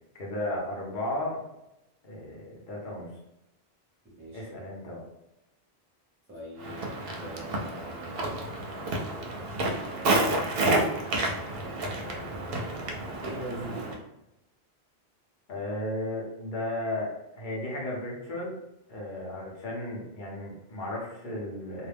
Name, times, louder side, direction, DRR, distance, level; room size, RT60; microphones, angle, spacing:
voice 1, 0.1-1.4 2.0-3.1 4.3-5.1 15.5-18.5 18.9-21.9, left 1 dB, 55° left, -3 dB, 0.8 m, -34 dB
voice 2, 4.0-4.5 6.3-8.3 8.8-10.5 11.6-14.1, right 1 dB, 15° right, -7 dB, 0.6 m, -44 dB
Walk footsteps, 6.6-14.0, right 2 dB, 70° right, 0.7 m, -30 dB
2.3 x 2.1 x 3.2 m, 0.89 s
omnidirectional pair, 1.1 m